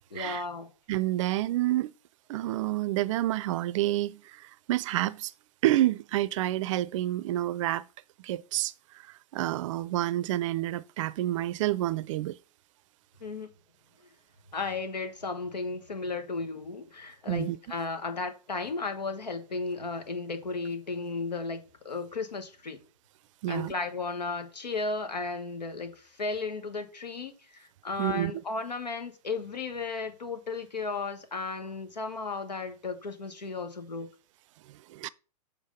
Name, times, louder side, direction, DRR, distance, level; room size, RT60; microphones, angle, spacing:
voice 1, 0.1-0.7 13.2-13.5 14.5-22.8 23.5-34.1, left 4 dB, 85° left, 1.4 m, -34 dB
voice 2, 0.9-1.9 2.3-5.3 5.6-7.8 8.2-8.7 9.3-12.4 17.3-17.6 23.4-23.7 28.0-28.3 34.7-35.1, right 15 dB, 50° right, 0.5 m, -28 dB
7.3 x 3.6 x 5.2 m
hypercardioid pair, 110°, 21 cm